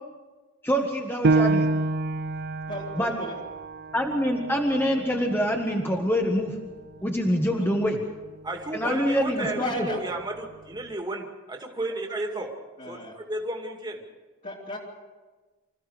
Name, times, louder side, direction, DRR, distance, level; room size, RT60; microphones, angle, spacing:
voice 1, 0.6-1.7 3.0-3.1 3.9-6.6 7.0-8.0 8.7-9.9, equal, 10° left, 1 dB, 1.6 m, -25 dB
Piano, 1.2-6.4 6.9-7.0 7.6-8.1, right 3 dB, 50° right, 0.5 m, -28 dB
voice 2, 2.7-3.4 7.6-7.7 8.8-9.0 9.4-10.0 12.8-13.1 14.4-14.8, left 1 dB, 40° left, -6 dB, 3.1 m, -34 dB
voice 3, 8.4-12.5 12.9-14.0, right 2 dB, 20° right, 2 dB, 2.5 m, -33 dB
26.0 x 15.0 x 6.7 m, 1.3 s
head